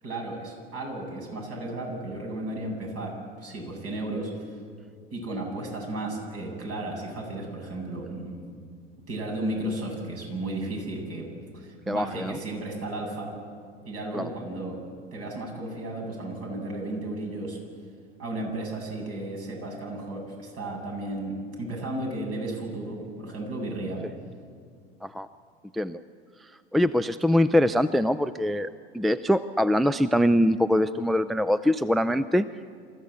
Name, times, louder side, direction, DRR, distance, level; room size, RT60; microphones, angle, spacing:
voice 1, 0.0-4.3 5.1-8.4 9.1-11.3 11.5-13.3 13.8-14.8 15.1-17.6 18.2-24.0, right 1 dB, 50° right, 1 dB, 7.8 m, -34 dB
voice 2, 11.9-12.4 14.1-14.3 25.0-25.3 25.7-26.0 26.7-28.7 28.9-32.5, left 1 dB, ahead, 14 dB, 0.5 m, -23 dB
28.0 x 14.5 x 8.3 m, 2.2 s
hypercardioid pair, 85°, 30 cm